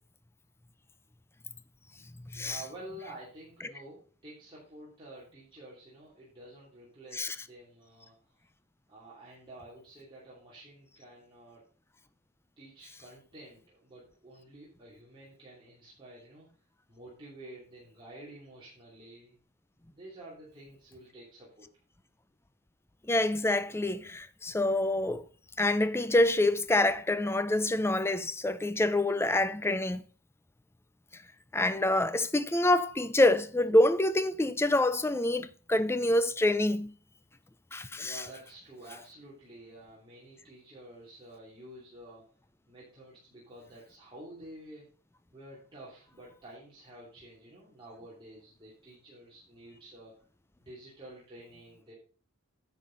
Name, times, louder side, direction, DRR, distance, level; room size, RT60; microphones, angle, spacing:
voice 1, 2.4-8.4 8.9-11.6 12.6-16.5 16.9-19.4 19.9-21.7 38.0-42.3 42.7-44.9 45.3-50.2 50.6-51.9, right 1 dB, 20° right, 2.9 m, -50 dB
voice 2, 23.1-25.2 25.6-30.0 31.5-36.9 37.7-38.2, left 1 dB, 10° left, 0.5 m, -26 dB
10.0 x 7.1 x 4.0 m
head